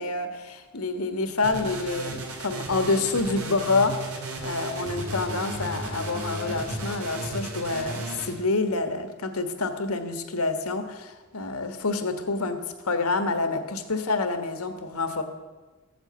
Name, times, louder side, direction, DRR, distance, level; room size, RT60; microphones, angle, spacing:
voice 1, 0.0-4.0 4.4-12.6 12.8-15.2, left 3 dB, 80° left, 8 dB, 1.4 m, -27 dB
sound 1, 1.4-8.3, right 2 dB, 85° right, 2.6 m, -34 dB
14.5 x 8.1 x 7.9 m, 1.2 s
head